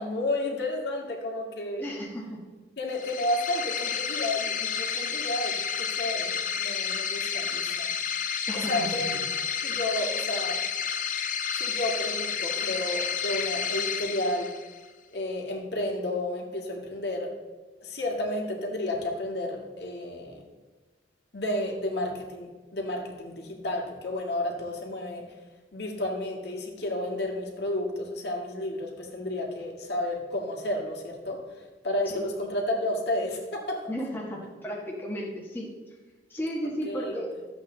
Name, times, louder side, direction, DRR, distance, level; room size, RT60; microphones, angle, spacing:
voice 1, 0.0-1.9 2.8-7.9 8.5-9.1 9.6-10.6 11.6-14.5 15.1-17.3 17.8-20.4 21.3-25.2 25.7-33.8 36.9-37.4, left 1 dB, 60° left, 0 dB, 2.0 m, -31 dB
voice 2, 1.8-2.4 8.5-9.2 32.0-32.2 33.9-35.7 36.3-37.3, equal, 10° left, -3 dB, 1.3 m, -34 dB
sound 1, 2.9-14.8, left 7 dB, 45° left, 0.7 m, -30 dB
13.5 x 8.0 x 3.9 m, 1.3 s
head